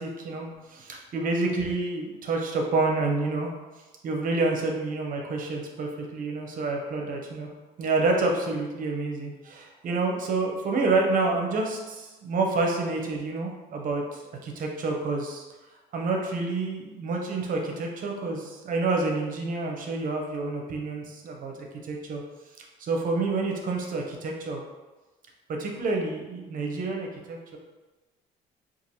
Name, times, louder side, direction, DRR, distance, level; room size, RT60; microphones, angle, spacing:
voice 1, 0.0-3.5 4.0-7.5 7.8-15.4 15.9-21.5 21.8-22.2 22.8-24.6 25.5-27.6, right 3 dB, 55° right, 1 dB, 0.7 m, -28 dB
4.5 x 2.5 x 2.8 m, 1.2 s
cardioid pair, 110°, 17 cm